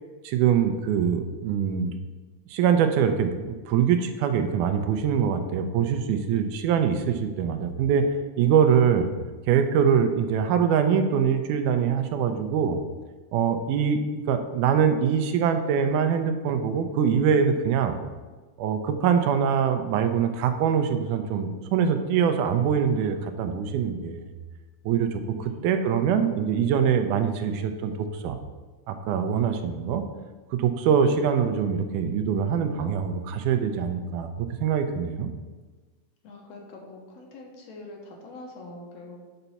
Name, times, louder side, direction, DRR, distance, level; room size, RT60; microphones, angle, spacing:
voice 1, 0.2-1.9 2.5-8.1 8.4-9.1 9.5-12.8 13.3-18.0 18.6-24.3 24.9-28.4 28.9-30.0 30.5-35.3, right 7 dB, 85° right, 7 dB, 2.1 m, -23 dB
voice 2, 25.2-26.1 36.2-39.2, left 2 dB, 65° left, 0 dB, 2.0 m, -44 dB
8.1 x 4.0 x 5.6 m, 1.3 s
omnidirectional pair, 3.5 m